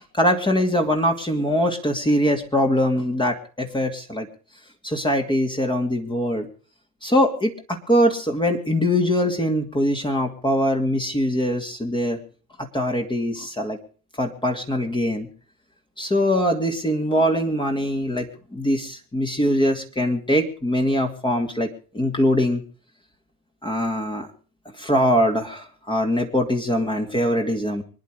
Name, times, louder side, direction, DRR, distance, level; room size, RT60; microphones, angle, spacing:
voice 1, 0.2-4.3 4.8-6.5 7.0-12.2 12.7-13.8 14.2-15.3 16.0-21.7 21.9-22.6 23.6-24.3 24.8-27.8, equal, 10° left, 3 dB, 2.6 m, -22 dB
25.0 x 10.5 x 5.0 m, 0.40 s
figure-of-eight pair, 80°, 46 cm